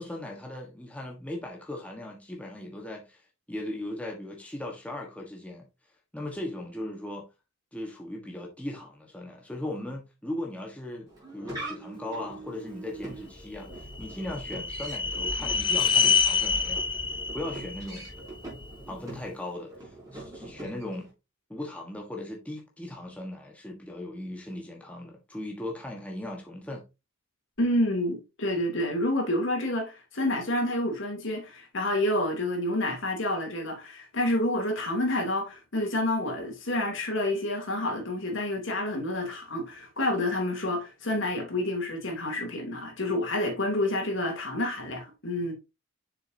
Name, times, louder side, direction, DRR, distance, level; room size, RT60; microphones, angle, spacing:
voice 1, 0.0-3.2 3.5-5.6 6.1-7.3 7.7-16.8 17.3-18.1 18.9-21.1 21.5-26.8, left 1 dB, 5° left, 1.4 m, -38 dB
sound 1, 11.1-21.1, right 2 dB, 15° right, 4.5 m, -43 dB
sound 2, 13.5-18.7, left 6 dB, 25° left, 0.5 m, -27 dB
voice 2, 27.6-45.5, left 1 dB, 65° left, 2.9 m, -29 dB
7.1 x 6.8 x 2.8 m
head